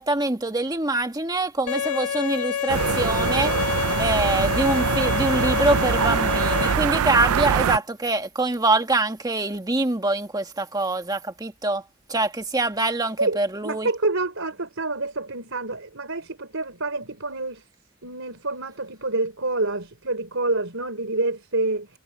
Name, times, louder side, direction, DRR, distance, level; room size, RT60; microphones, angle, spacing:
voice 1, 0.0-3.5 4.0-11.8 12.1-13.9, right 2 dB, 15° right, 1.6 m, -24 dB
Bowed string instrument, 1.7-6.7, left 9 dB, 85° left, 0.7 m, -27 dB
sound 1, 2.7-7.8, right 7 dB, 85° right, 0.5 m, -23 dB
voice 2, 13.2-17.6 18.0-22.0, right 2 dB, 60° right, 5.0 m, -27 dB
head